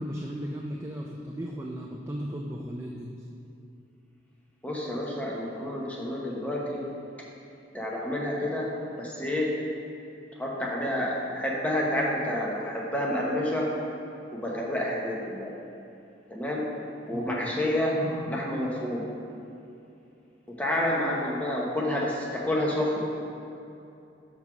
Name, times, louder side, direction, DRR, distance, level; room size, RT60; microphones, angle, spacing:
voice 1, 0.0-3.1 17.1-17.5, equal, 15° right, -2 dB, 0.3 m, -36 dB
voice 2, 4.6-6.8 7.7-8.7 9.0-9.5 10.4-13.7 14.3-15.5 16.3-16.6 17.1-19.1 20.5-23.3, left 1 dB, 10° left, -4 dB, 0.9 m, -29 dB
5.7 x 4.6 x 6.0 m, 2.8 s
head